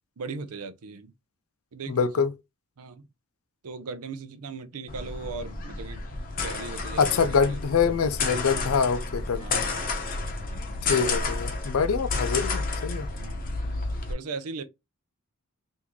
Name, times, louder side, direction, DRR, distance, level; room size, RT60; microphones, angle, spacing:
voice 1, 0.2-1.1 1.7-2.1 2.8-3.1 3.6-6.0 6.4-7.6 9.4-9.8 10.9-11.2 13.2-13.4 14.1-14.6, right 4 dB, 85° right, 0.6 m, -38 dB
voice 2, 1.9-2.3 7.0-9.7 10.8-13.1, left 6 dB, 70° left, 0.4 m, -25 dB
sound 1, 4.9-14.1, left 3 dB, 40° left, 0.7 m, -31 dB
3.6 x 2.6 x 3.0 m
head